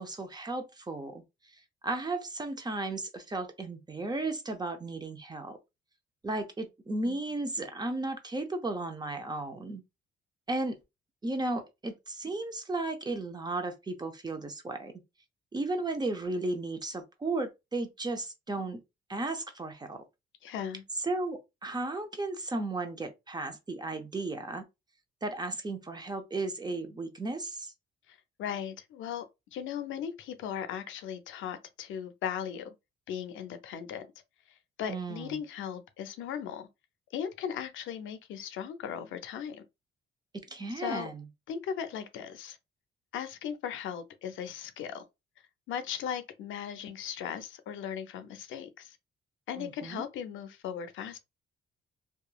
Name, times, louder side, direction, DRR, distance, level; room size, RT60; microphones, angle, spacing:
voice 1, 0.0-5.6 6.2-9.8 10.5-10.8 11.2-14.9 15.5-18.8 19.1-20.0 21.0-24.6 25.2-27.7 34.9-35.4 40.3-41.2 49.6-50.0, right 2 dB, 20° right, 0.6 m, -35 dB
voice 2, 20.4-20.8 28.1-29.3 29.5-32.7 33.1-34.1 34.8-36.7 37.1-39.6 40.7-41.1 41.5-42.6 43.1-45.0 45.7-49.0 49.5-51.2, left 8 dB, 80° left, 0.5 m, -37 dB
2.9 x 2.3 x 2.3 m
cardioid pair, 90°, 20 cm